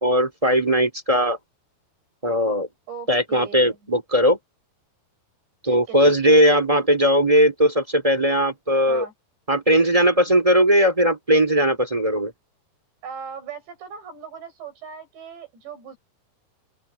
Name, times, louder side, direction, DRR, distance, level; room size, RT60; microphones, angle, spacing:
voice 1, 0.0-1.4 2.2-2.7 3.1-4.4 5.6-9.0 9.5-12.3, equal, 10° right, 2.2 m, -18 dB
voice 2, 2.9-3.8 5.7-6.5 8.9-9.1 13.0-16.0, right 6 dB, 80° right, 8.8 m, -38 dB
open air
omnidirectional pair, 4.9 m